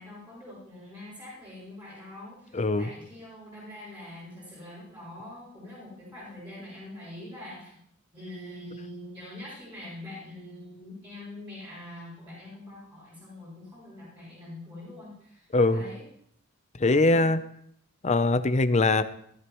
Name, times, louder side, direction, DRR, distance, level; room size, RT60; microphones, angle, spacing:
voice 1, 0.0-7.8 8.1-16.0, left 1 dB, 25° right, -10 dB, 7.4 m, -44 dB
voice 2, 2.5-2.9 15.5-15.8 16.8-17.4 18.0-19.0, left 2 dB, 35° left, 11 dB, 0.7 m, -22 dB
18.0 x 14.0 x 3.1 m, 0.68 s
head